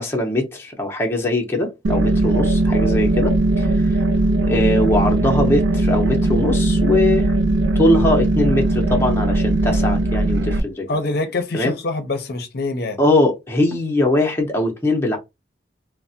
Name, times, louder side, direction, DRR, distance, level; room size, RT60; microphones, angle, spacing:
voice 1, 0.0-4.0 4.4-7.3 7.7-11.0 11.5-11.7 13.0-15.2, left 1 dB, 15° left, 0.6 m, -21 dB
sound 1, 1.8-10.6, right 2 dB, 80° right, 0.4 m, -19 dB
voice 2, 10.9-13.0, left 2 dB, 60° left, 0.6 m, -25 dB
3.3 x 2.0 x 2.7 m
head